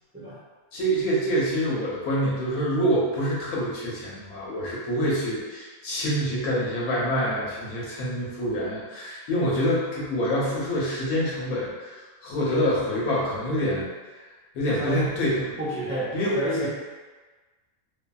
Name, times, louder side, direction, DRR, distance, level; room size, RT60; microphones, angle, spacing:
voice 1, 0.7-13.9 14.5-15.5 16.1-16.7, equal, 85° left, -6 dB, 1.3 m, -26 dB
voice 2, 14.7-16.7, equal, 15° right, -10 dB, 0.5 m, -31 dB
2.7 x 2.6 x 2.3 m, 1.3 s
omnidirectional pair, 1.5 m